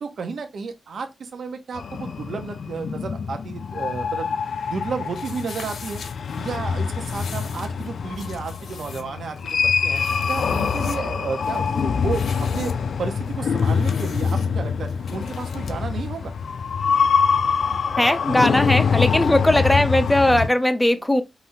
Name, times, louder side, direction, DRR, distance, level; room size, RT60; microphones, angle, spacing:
voice 1, 0.0-4.4 4.7-6.0 6.4-10.0 10.3-12.7 13.0-16.3, right 5 dB, 70° right, 0.9 m, -32 dB
sound 1, 1.8-20.5, left 6 dB, 65° left, 0.4 m, -24 dB
sound 2, 5.1-15.8, left 5 dB, 90° left, 0.8 m, -43 dB
voice 2, 18.0-21.2, left 1 dB, 5° left, 0.5 m, -19 dB
5.3 x 3.2 x 2.7 m
wide cardioid pair, 150°, 0 cm